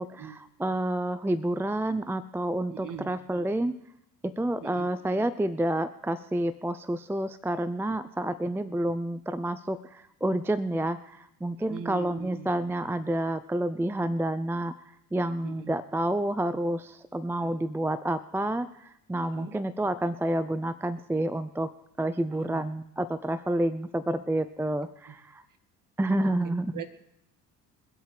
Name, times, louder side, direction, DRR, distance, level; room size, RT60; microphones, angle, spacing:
voice 1, 0.0-3.8 4.2-14.7 15.1-21.7 22.0-25.4 26.0-26.7, right 1 dB, 5° right, 14 dB, 0.5 m, -29 dB
voice 2, 2.7-3.1 4.6-4.9 8.4-8.5 11.7-12.5 15.4-15.7 17.4-17.5 19.2-19.6 22.3-22.6 24.0-24.5 25.1-25.2 26.2-27.1, right 8 dB, 40° right, 9 dB, 1.9 m, -42 dB
23.5 x 8.2 x 3.4 m, 0.82 s
hypercardioid pair, 60°, 47 cm